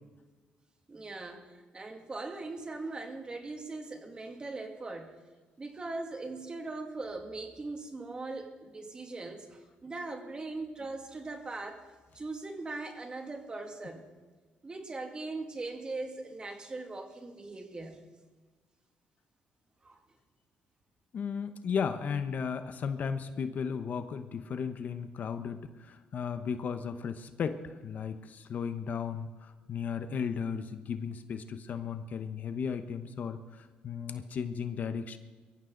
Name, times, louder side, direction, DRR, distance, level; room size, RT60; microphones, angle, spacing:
voice 1, 0.9-5.1 5.6-11.8 12.1-14.1 14.6-18.0 19.8-20.0, right 3 dB, 25° right, 4 dB, 2.3 m, -40 dB
voice 2, 21.1-35.2, left 6 dB, 55° left, 10 dB, 1.0 m, -35 dB
22.5 x 14.5 x 3.9 m, 1.3 s
cardioid pair, 95°, 3 cm